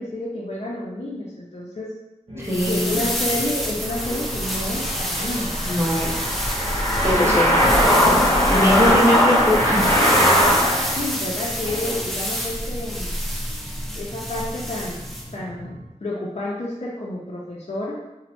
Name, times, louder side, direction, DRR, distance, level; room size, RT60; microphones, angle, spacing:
voice 1, 0.0-1.9 2.7-5.7 7.2-7.8 8.5-9.0 10.9-13.2 13.9-15.1 15.3-18.0, left 1 dB, 60° left, -5 dB, 0.4 m, -30 dB
voice 2, 2.3-3.1 5.6-6.1 7.0-7.7 8.5-9.8 10.8-11.0, left 1 dB, 20° right, -5 dB, 0.8 m, -22 dB
sound 1, 2.3-15.9, equal, 50° right, 0.7 m, -38 dB
sound 2, 2.4-15.3, equal, ahead, 0.5 m, -29 dB
sound 3, 3.9-11.0, equal, 25° left, 0.8 m, -19 dB
3.0 x 2.1 x 2.9 m, 0.99 s
wide cardioid pair, 40°, 13 cm